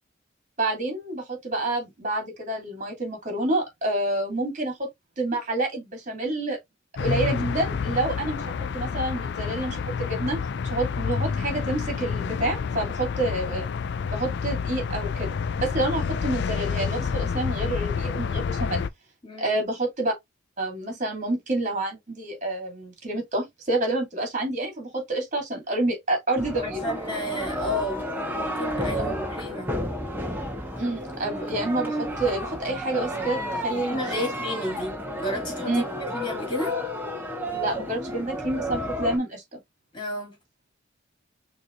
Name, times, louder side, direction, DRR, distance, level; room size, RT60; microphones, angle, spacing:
voice 1, 0.6-4.9 5.2-6.6 7.0-8.4 8.7-10.4 10.7-13.6 14.1-18.8 19.4-20.1 20.6-26.9 29.0-29.1 30.8-34.3 35.7-35.8 37.5-39.6, right 2 dB, 40° right, 2.4 m, -28 dB
sound 1, 7.0-18.9, left 6 dB, 60° left, 0.4 m, -29 dB
voice 2, 19.2-19.5 26.6-28.1 28.3-29.7 33.7-35.8 36.1-36.8 39.9-40.4, left 1 dB, 25° left, 2.3 m, -32 dB
sound 2, 26.4-39.2, equal, 10° right, 1.3 m, -31 dB
6.3 x 3.2 x 2.5 m
head